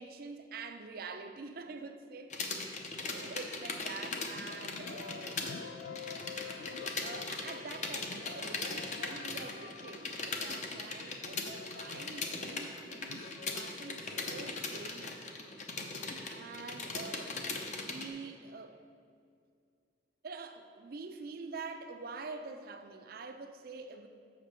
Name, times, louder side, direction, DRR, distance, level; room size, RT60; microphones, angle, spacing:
voice 1, 0.0-2.4 3.1-5.4 6.1-6.2 7.0-15.2 16.3-18.8 20.2-24.1, right 4 dB, 55° right, 8 dB, 0.5 m, -46 dB
sound 1, 2.3-5.5 5.8-18.1, left 3 dB, 40° left, 0.7 m, -39 dB
sound 2, 4.1-15.8, left 6 dB, 80° left, 0.3 m, -50 dB
5.8 x 5.1 x 6.7 m, 2.3 s
head